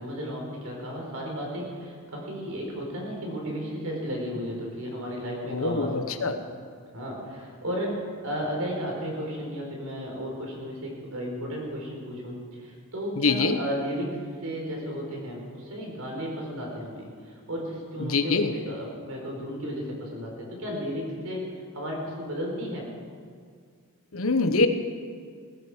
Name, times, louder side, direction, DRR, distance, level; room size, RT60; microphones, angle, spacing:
voice 1, 0.0-6.4 6.9-22.9, equal, 75° right, -1 dB, 4.6 m, -34 dB
voice 2, 5.5-6.3 13.2-13.6 18.0-18.5 24.1-24.7, left 3 dB, 65° left, 8 dB, 1.1 m, -24 dB
18.0 x 15.5 x 5.1 m, 2.1 s
head